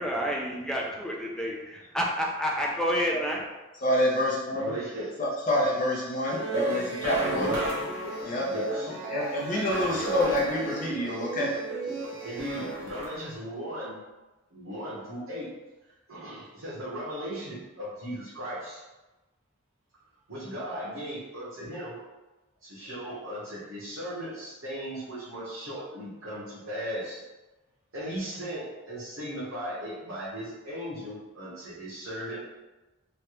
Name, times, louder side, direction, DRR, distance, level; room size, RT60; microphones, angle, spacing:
voice 1, 0.0-3.4, equal, 5° left, -2 dB, 0.3 m, -29 dB
voice 2, 3.8-4.8 5.2-7.5 8.1-8.5 8.9-11.6 11.9-12.3, left 1 dB, 40° left, -4 dB, 0.7 m, -28 dB
voice 3, 4.5-5.1 6.8-6.9 7.3-7.8 8.5-9.1 12.2-14.0 14.5-15.5 16.1-18.8 20.3-22.0 22.6-27.2 27.9-32.4, equal, 80° right, -10 dB, 1.0 m, -37 dB
sound 1, 6.3-13.3, right 1 dB, 55° right, 0.9 m, -33 dB
3.1 x 2.4 x 2.9 m, 1.1 s
head